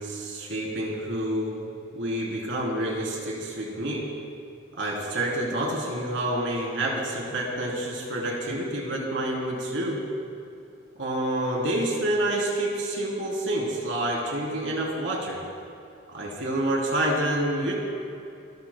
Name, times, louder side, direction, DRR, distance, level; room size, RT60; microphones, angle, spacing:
voice 1, 0.0-4.0 4.7-10.0 11.0-15.4 16.1-17.7, right 1 dB, 75° right, -3 dB, 3.4 m, -28 dB
29.0 x 13.0 x 2.2 m, 2.7 s
head